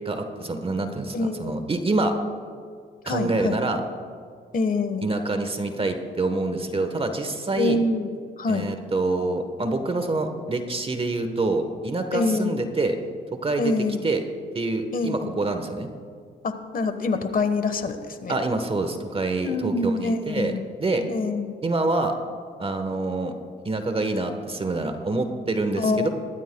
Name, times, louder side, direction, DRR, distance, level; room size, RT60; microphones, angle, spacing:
voice 1, 0.0-2.1 3.1-3.8 5.0-7.8 8.5-13.0 13.4-13.7 14.0-14.2 14.5-15.9 18.3-20.5 20.8-21.0 21.6-22.1 22.6-23.3 23.6-26.1, right 2 dB, 30° right, 6 dB, 1.2 m, -26 dB
voice 2, 1.1-1.6 3.0-3.6 4.5-5.1 7.6-8.1 8.4-8.7 12.1-12.6 13.6-14.0 14.9-15.3 16.4-18.4 19.4-20.7 21.1-21.5 25.8-26.1, left 3 dB, 45° left, 9 dB, 1.3 m, -25 dB
21.5 x 13.5 x 2.3 m, 2.1 s
cardioid pair, 90°, 20 cm